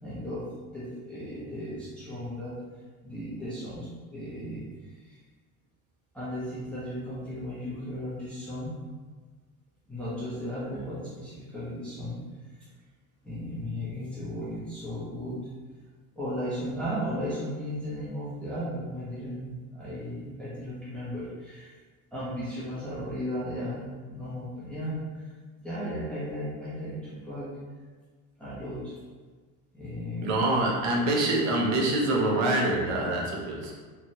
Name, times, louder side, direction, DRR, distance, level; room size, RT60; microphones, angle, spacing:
voice 1, 0.0-2.6 3.0-5.2 6.1-8.8 9.9-12.2 13.2-15.4 16.2-21.7 22.1-25.3 25.6-27.5 28.4-28.9 29.7-30.6, equal, 5° left, -11 dB, 0.7 m, -35 dB
voice 2, 30.2-33.7, right 2 dB, 45° right, -1 dB, 0.7 m, -25 dB
3.1 x 2.3 x 2.7 m, 1.4 s
supercardioid pair, 135°, 40 cm